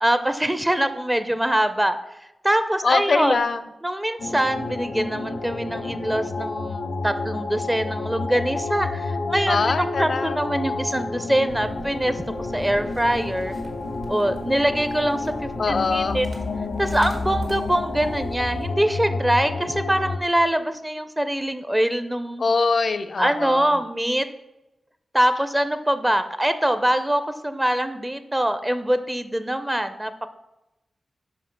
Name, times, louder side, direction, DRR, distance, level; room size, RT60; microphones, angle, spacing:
voice 1, 0.0-2.0 2.4-3.4 3.8-12.2 12.5-13.6 14.1-16.3 16.8-22.4 23.2-24.3 25.1-30.3, right 1 dB, 10° right, 11 dB, 0.4 m, -23 dB
voice 2, 2.8-3.6 9.5-10.4 15.6-16.2 22.4-23.7, left 4 dB, 60° left, 12 dB, 0.5 m, -23 dB
sound 1, 4.2-20.2, left 3 dB, 85° left, 0.8 m, -30 dB
sound 2, 11.5-18.7, right 1 dB, 75° right, 1.6 m, -40 dB
5.5 x 5.1 x 5.7 m, 0.95 s
wide cardioid pair, 85°, 0 cm